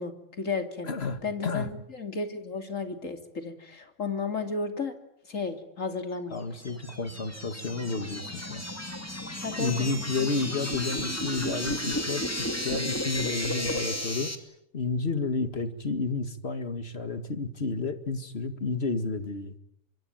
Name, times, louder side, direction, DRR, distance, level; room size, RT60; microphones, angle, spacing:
voice 1, 0.0-0.9 1.2-5.0 5.3-6.4 9.4-9.7, left 4 dB, 70° left, 6 dB, 3.2 m, -33 dB
voice 2, 0.8-1.7 6.3-8.7 9.6-14.3 14.7-19.5, left 4 dB, 50° left, 9 dB, 2.2 m, -31 dB
sound 1, 6.4-14.4, left 1 dB, 10° left, 2.6 m, -33 dB
25.0 x 23.5 x 8.9 m, 0.78 s
omnidirectional pair, 1.4 m